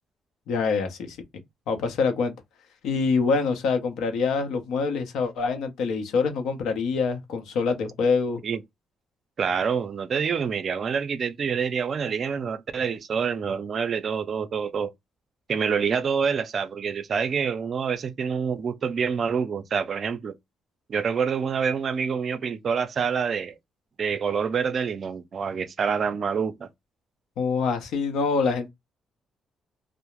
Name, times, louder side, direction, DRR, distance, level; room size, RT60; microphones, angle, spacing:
voice 1, 0.5-1.2 1.7-2.3 2.8-8.4 27.4-28.7, left 4 dB, 85° left, 0.6 m, -25 dB
voice 2, 9.4-14.9 15.5-20.3 20.9-23.6 24.0-26.7, right 6 dB, 50° right, 0.4 m, -27 dB
2.3 x 2.0 x 2.9 m
cardioid pair, 90°, 0 cm